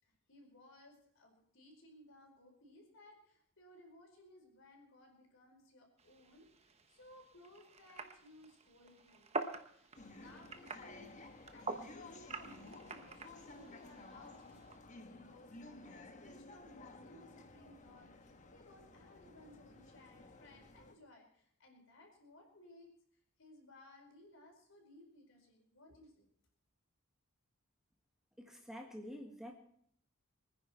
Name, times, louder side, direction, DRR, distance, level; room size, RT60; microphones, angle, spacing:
voice 1, 0.0-9.4 9.7-11.1 11.5-22.9 23.4-26.3, left 1 dB, 60° left, 1 dB, 4.8 m, -61 dB
sound 1, 6.0-14.8, right 3 dB, 30° right, 1.1 m, -47 dB
sound 2, 9.9-20.9, left 2 dB, 35° left, 1.2 m, -55 dB
voice 2, 28.4-29.5, equal, ahead, 1 dB, 1.5 m, -48 dB
23.5 x 10.0 x 4.6 m, 0.65 s
head